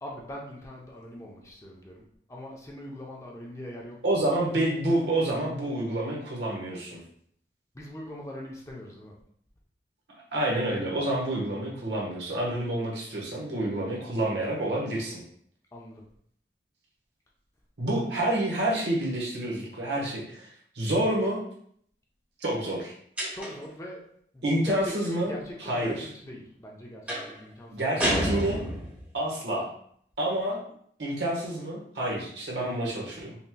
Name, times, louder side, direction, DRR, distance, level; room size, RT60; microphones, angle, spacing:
voice 1, 0.0-4.2 7.7-9.1 15.7-16.0 23.3-24.1 24.3-27.8, left 1 dB, 15° left, -2 dB, 0.6 m, -42 dB
voice 2, 4.0-7.0 10.3-15.2 17.8-21.4 22.4-22.9 24.4-25.3 25.6-26.1 27.7-28.6 29.1-29.7 30.2-30.6 31.0-33.4, right 1 dB, 75° right, -3 dB, 1.2 m, -28 dB
sound 1, 23.2-23.8 27.1-27.4 28.0-29.1, equal, 10° right, 1.0 m, -29 dB
5.5 x 2.9 x 2.2 m, 0.64 s
head